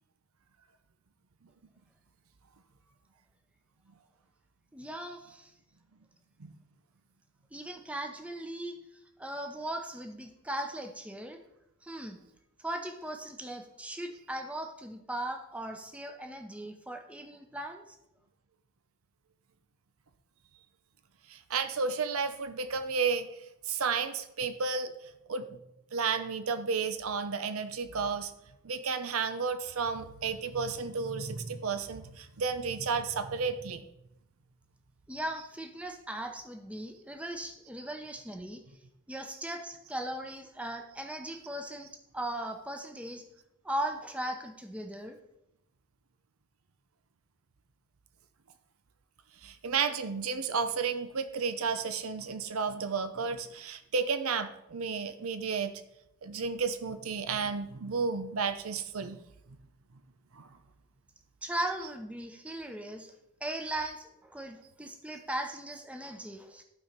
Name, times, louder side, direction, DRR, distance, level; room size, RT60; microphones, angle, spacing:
voice 1, 4.7-5.5 7.5-8.8 9.2-11.4 11.8-12.2 12.6-18.0 35.1-38.6 39.1-43.2 43.6-45.2 61.4-63.1 63.4-66.6, right 1 dB, 5° right, 4 dB, 0.8 m, -38 dB
voice 2, 21.3-23.3 23.7-24.9 25.3-25.5 25.9-28.3 28.6-33.8 49.4-55.7 56.2-59.2 60.3-60.5, right 5 dB, 90° right, 10 dB, 0.7 m, -32 dB
12.0 x 4.5 x 5.2 m, 0.83 s
head